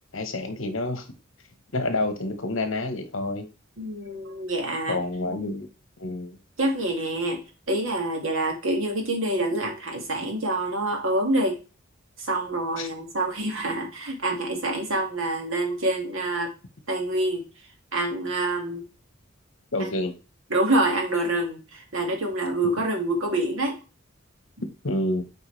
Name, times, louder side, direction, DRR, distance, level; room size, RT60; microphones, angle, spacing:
voice 1, 0.1-1.1 1.7-3.5 4.9-5.7 6.0-6.4 12.8-12.9 19.7-20.2 24.8-25.2, left 2 dB, 65° left, 1.2 m, -28 dB
voice 2, 3.8-5.0 6.6-11.6 12.2-16.5 16.9-17.4 17.9-18.8 19.8-19.9 20.5-23.8, right 1 dB, 75° right, 2.1 m, -26 dB
8.1 x 4.6 x 3.3 m
head